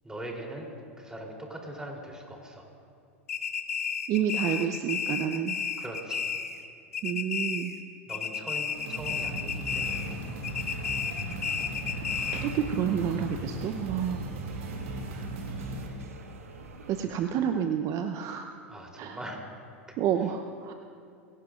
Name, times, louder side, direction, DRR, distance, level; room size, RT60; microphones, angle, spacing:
voice 1, 0.0-0.7 1.0-2.7 5.8-6.3 8.1-10.1 17.0-17.2 18.7-19.4, right 1 dB, 10° right, 0 dB, 3.4 m, -41 dB
sound 1, 3.3-6.7 6.9-7.8 8.1-10.1 10.4-12.6, left 7 dB, 90° left, 1.0 m, -32 dB
voice 2, 4.1-5.6 7.0-7.7 12.3-14.2 16.9-18.5 19.0-19.2 20.0-20.7, right 8 dB, 45° right, 6 dB, 0.8 m, -29 dB
sound 2, 8.7-15.9, right 1 dB, 70° right, 2.4 m, -37 dB
sound 3, 9.6-17.0, right 3 dB, 85° right, 1.4 m, -46 dB
22.5 x 17.5 x 2.5 m, 2.4 s
hypercardioid pair, 95°, 8 cm